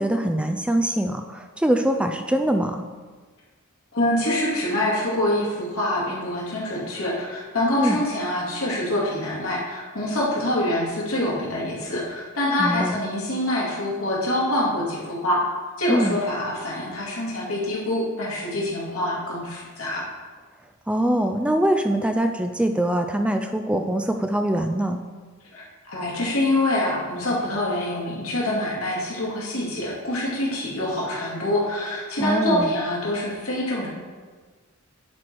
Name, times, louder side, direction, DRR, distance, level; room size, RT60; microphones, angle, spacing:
voice 1, 0.0-2.8 7.8-8.0 12.6-13.0 15.9-16.2 20.9-25.0 32.2-32.7, right 1 dB, 5° right, 6 dB, 0.3 m, -23 dB
voice 2, 3.9-15.4 15.8-20.0 25.5-33.9, left 1 dB, 80° left, -5 dB, 2.5 m, -25 dB
10.5 x 4.7 x 4.5 m, 1.4 s
head